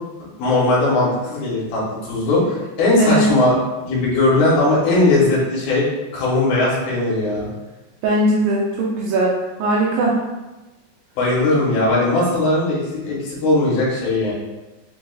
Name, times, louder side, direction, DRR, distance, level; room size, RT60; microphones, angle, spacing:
voice 1, 0.2-3.5 3.8-5.8 6.1-7.5 11.2-14.3, left 2 dB, 70° left, -6 dB, 2.5 m, -18 dB
voice 2, 8.0-10.2, right 1 dB, 80° right, -4 dB, 2.4 m, -19 dB
6.6 x 2.3 x 2.3 m, 1.1 s
omnidirectional pair, 4.9 m